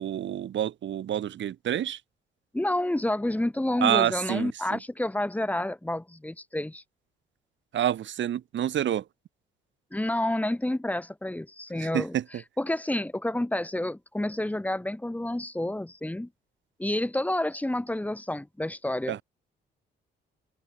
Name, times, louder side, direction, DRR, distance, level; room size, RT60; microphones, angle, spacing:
voice 1, 0.0-2.0 3.8-4.8 7.7-9.1 11.8-12.4 19.1-19.2, right 11 dB, 70° right, 5.0 m, -28 dB
voice 2, 2.5-6.8 9.9-12.1 12.6-16.3 16.8-19.2, left 1 dB, 5° left, 2.1 m, -29 dB
cardioid pair, 90°, 20 cm